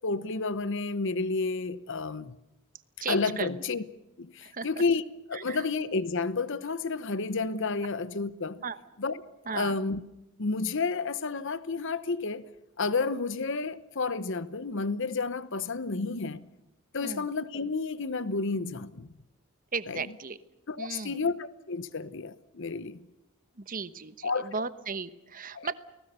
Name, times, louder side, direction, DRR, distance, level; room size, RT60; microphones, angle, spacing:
voice 1, 0.0-2.3 3.1-3.8 4.2-5.0 5.3-8.6 9.0-9.2 9.5-10.0 10.4-12.4 12.8-16.4 16.9-19.1 19.9-20.1 20.7-23.0 24.2-24.5 25.5-25.7, left 4 dB, 55° left, 0.9 m, -31 dB
voice 2, 3.0-3.5 4.4-4.7 5.3-5.6 8.6-8.8 9.5-9.7 17.0-17.3 19.7-20.4 20.8-21.2 23.6-25.7, right 4 dB, 40° right, 1.1 m, -36 dB
29.5 x 19.5 x 6.8 m
head